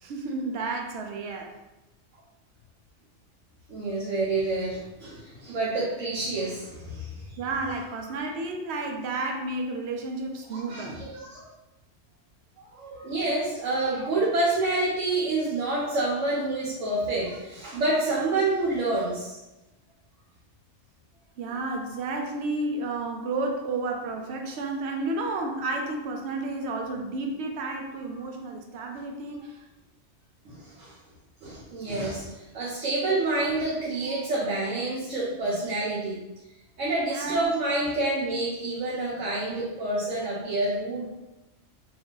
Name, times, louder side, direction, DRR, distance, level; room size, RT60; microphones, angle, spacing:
voice 1, 0.0-1.5 7.4-11.0 21.4-29.6 37.1-37.4, right 2 dB, 65° right, 3 dB, 0.8 m, -31 dB
voice 2, 3.7-7.4 8.1-8.2 10.5-11.4 12.7-19.4 30.4-30.9 31.4-32.2 32.5-36.2 36.8-41.1, right 2 dB, 85° right, -6 dB, 1.1 m, -28 dB
2.6 x 2.5 x 3.7 m, 1.0 s
omnidirectional pair, 1.3 m